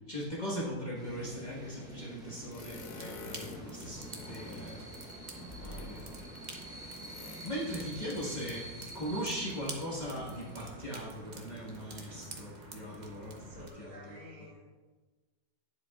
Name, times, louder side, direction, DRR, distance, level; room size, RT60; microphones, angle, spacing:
voice 1, 0.0-4.8 5.5-6.2 7.4-14.2, equal, 25° left, -7 dB, 1.4 m, -39 dB
sound 1, 0.9-12.3, right 1 dB, 5° right, 0.6 m, -49 dB
sound 2, 2.2-13.7, right 2 dB, 45° right, 0.6 m, -48 dB
sound 3, 2.5-3.7 4.1-4.9 5.5-6.3 6.9-7.4, left 4 dB, 85° left, 1.5 m, -48 dB
voice 2, 5.4-6.4 13.3-14.7, left 1 dB, 75° right, -5 dB, 2.6 m, -53 dB
9.7 x 7.5 x 2.4 m, 1.3 s
omnidirectional pair, 1.9 m